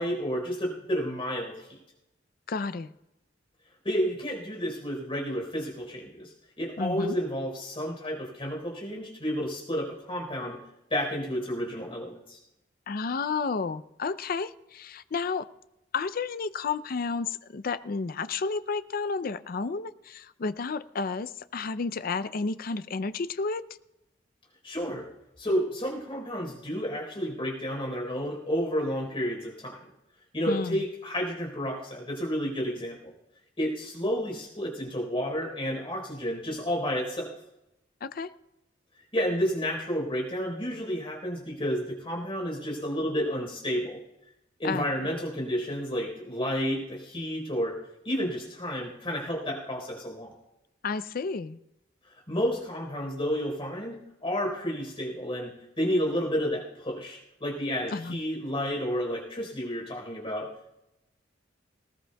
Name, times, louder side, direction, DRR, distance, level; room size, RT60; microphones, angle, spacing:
voice 1, 0.0-1.8 3.8-10.6 10.9-12.4 24.6-25.1 25.4-29.8 30.3-33.1 33.6-37.3 39.1-44.0 44.6-47.8 48.0-50.3 52.0-60.5, equal, 30° left, 0 dB, 4.0 m, -31 dB
voice 2, 2.5-2.9 6.8-7.1 12.9-15.5 15.9-23.6 30.5-30.8 38.0-38.3 44.6-44.9 50.8-51.6 57.9-58.2, left 4 dB, 50° left, 14 dB, 0.5 m, -31 dB
19.0 x 19.0 x 2.3 m, 0.91 s
head